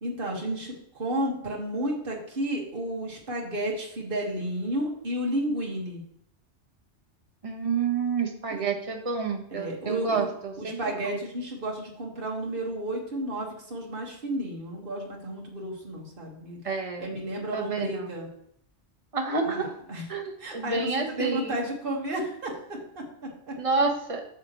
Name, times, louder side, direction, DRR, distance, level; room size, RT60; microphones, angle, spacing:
voice 1, 0.0-6.0 8.5-8.8 9.5-10.3 10.6-16.6 17.0-18.3 19.4-19.6 19.9-20.0 20.4-23.6, right 1 dB, 50° right, -1 dB, 1.9 m, -32 dB
voice 2, 7.4-10.8 11.0-11.2 16.6-17.1 17.5-18.1 19.1-19.7 20.1-21.5 23.6-24.2, right 4 dB, 30° right, 3 dB, 1.2 m, -29 dB
9.2 x 6.7 x 3.1 m, 0.71 s
omnidirectional pair, 1.2 m